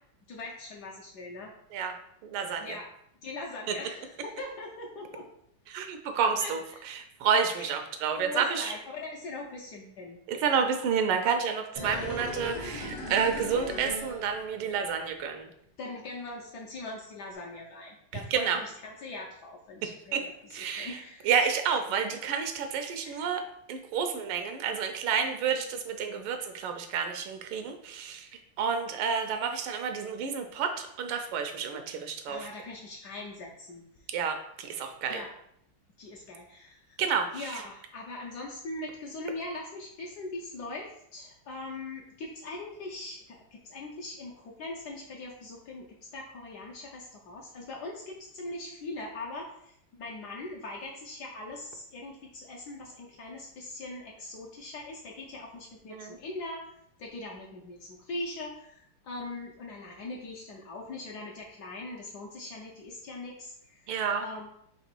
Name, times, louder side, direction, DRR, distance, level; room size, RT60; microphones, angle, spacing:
voice 1, 0.3-1.5 2.6-2.9 3.2-5.3 6.4-6.8 7.6-7.7 8.1-10.2 15.8-21.3 23.0-23.3 32.3-33.8 35.1-35.3 36.0-37.0 37.3-45.9 46.1-56.7 57.0-63.9 64.2-64.5, left 2 dB, 65° left, -2 dB, 1.0 m, -41 dB
voice 2, 2.2-2.8 5.7-6.6 6.9-8.7 10.3-15.5 18.3-18.6 20.1-20.2 20.5-21.0 21.2-23.4 23.7-28.3 28.6-32.4 34.1-35.2 37.0-37.6 55.9-56.2 63.9-64.2, right 6 dB, 80° right, 6 dB, 1.4 m, -30 dB
sound 1, 11.7-14.9 15.2-15.3, left 1 dB, 45° left, 0.4 m, -38 dB
3.9 x 2.9 x 4.4 m, 0.73 s
omnidirectional pair, 2.3 m